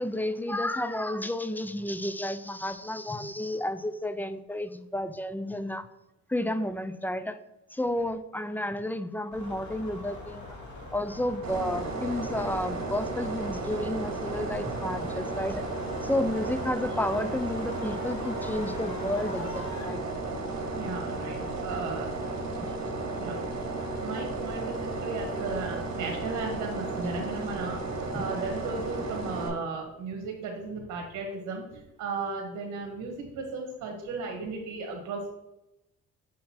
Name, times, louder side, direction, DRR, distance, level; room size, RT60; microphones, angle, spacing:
voice 1, 0.0-5.9 6.3-7.4 7.7-10.5 10.9-15.6 16.0-20.0 22.6-22.7 28.1-28.2, left 1 dB, 5° left, 11 dB, 0.4 m, -31 dB
sound 1, 9.3-19.8, left 2 dB, 70° left, 2.1 m, -43 dB
sound 2, 11.4-29.5, right 2 dB, 60° right, 1.7 m, -34 dB
voice 2, 20.7-22.2 23.1-23.4 24.0-27.8 28.1-35.3, right 4 dB, 80° right, 1 dB, 1.2 m, -35 dB
6.4 x 4.0 x 4.2 m, 0.90 s
cardioid pair, 90°, 30 cm